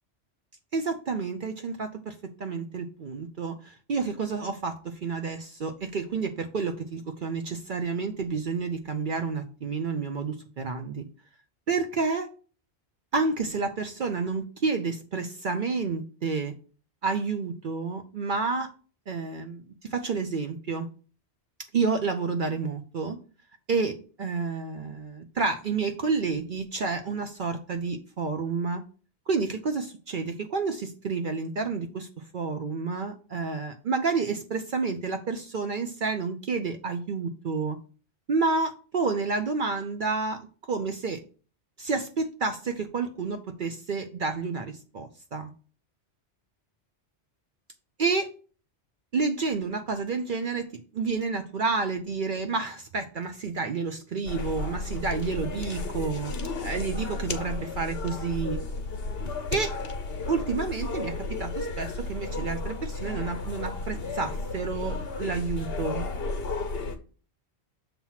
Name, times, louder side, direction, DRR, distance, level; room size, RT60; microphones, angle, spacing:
voice 1, 0.7-2.1 2.4-11.0 11.7-12.3 13.1-16.5 17.0-18.7 19.1-20.9 21.7-23.2 23.7-28.8 29.3-32.1 32.3-37.8 38.3-41.2 41.8-45.5 48.0-48.3 49.1-56.3 56.6-58.6 59.5-59.7 60.3-66.0, right 4 dB, 55° right, 6 dB, 0.7 m, -30 dB
sound 1, 54.3-67.0, left 3 dB, 60° left, 1.1 m, -33 dB
6.9 x 3.0 x 5.6 m, 0.38 s
omnidirectional pair, 1.1 m